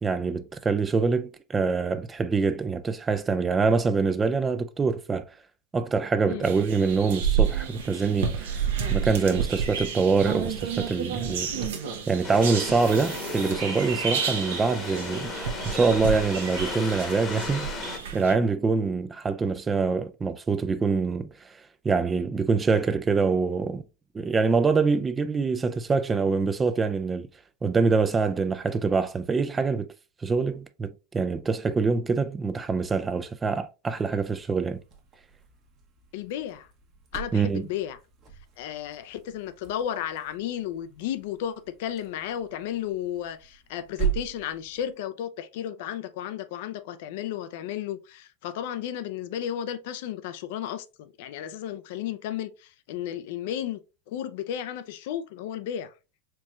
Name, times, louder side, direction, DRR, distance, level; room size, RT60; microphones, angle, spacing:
voice 1, 0.0-5.2 5.7-8.6 8.9-11.5 12.1-17.9 18.1-21.3 21.8-23.8 24.1-27.3 27.6-29.9 30.2-34.8 37.3-37.7, right 4 dB, 20° right, 0.3 m, -25 dB
sound 1, 6.4-18.3, right 7 dB, 80° right, 0.8 m, -30 dB
sound 2, 12.2-18.0, left 3 dB, 30° left, 0.9 m, -35 dB
sound 3, 33.9-45.0, right 8 dB, 40° right, 1.0 m, -39 dB
voice 2, 36.1-36.7 37.1-38.0 38.6-53.8 54.1-55.9, left 10 dB, 65° left, 0.4 m, -33 dB
4.4 x 3.0 x 2.3 m
hypercardioid pair, 110°, 0 cm